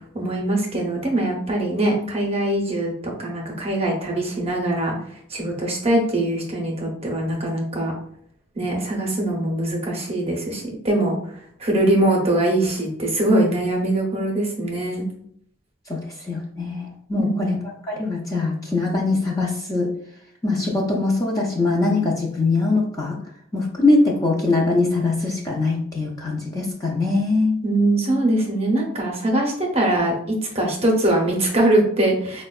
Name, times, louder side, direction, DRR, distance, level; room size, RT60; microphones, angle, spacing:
voice 1, 0.1-7.9 8.5-15.1 17.2-17.6 27.6-32.4, right 1 dB, 30° right, -1 dB, 0.6 m, -22 dB
voice 2, 15.9-17.6 17.8-19.9 20.4-23.2 23.5-27.6, left 3 dB, 15° left, -2 dB, 0.4 m, -22 dB
4.3 x 2.1 x 2.3 m, 0.67 s
head